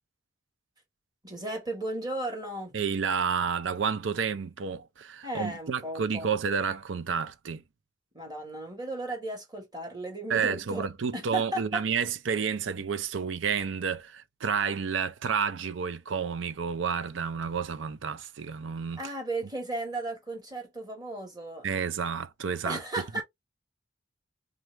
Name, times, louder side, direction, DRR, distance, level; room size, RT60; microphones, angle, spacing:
voice 1, 1.2-2.7 5.2-6.3 8.1-10.9 11.1-11.8 19.0-21.7 22.6-23.2, right 2 dB, 20° right, 1.8 m, -35 dB
voice 2, 2.7-7.6 10.3-19.0 21.6-22.8, right 6 dB, 80° right, 0.5 m, -30 dB
3.5 x 3.3 x 3.2 m
head